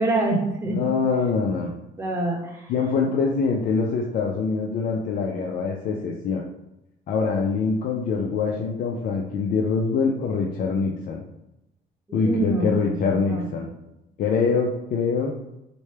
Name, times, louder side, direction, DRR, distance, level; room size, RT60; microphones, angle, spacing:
voice 1, 0.0-0.8 2.0-2.7 12.1-12.7 12.9-13.6, right 2 dB, 15° right, -1 dB, 0.9 m, -26 dB
voice 2, 0.7-1.7 2.7-6.5 7.1-11.2 12.1-13.7 14.2-15.4, left 5 dB, 55° left, 0 dB, 0.5 m, -24 dB
4.3 x 2.2 x 3.2 m, 0.90 s
cardioid pair, 110°, 17 cm